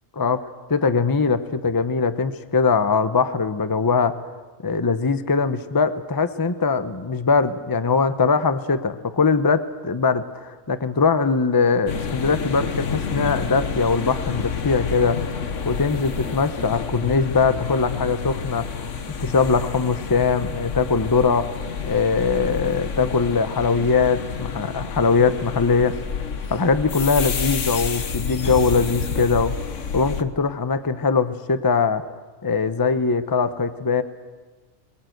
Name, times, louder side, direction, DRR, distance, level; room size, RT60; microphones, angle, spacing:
voice 1, 0.7-4.2 4.6-15.3 15.6-18.9 19.2-21.6 21.8-26.0 26.5-29.6 29.9-32.0 32.4-34.0, left 4 dB, 20° left, 11 dB, 0.7 m, -21 dB
sound 1, 11.9-30.2, left 6 dB, 65° left, 1.5 m, -29 dB
26.5 x 20.5 x 7.9 m, 1.3 s
omnidirectional pair, 1.4 m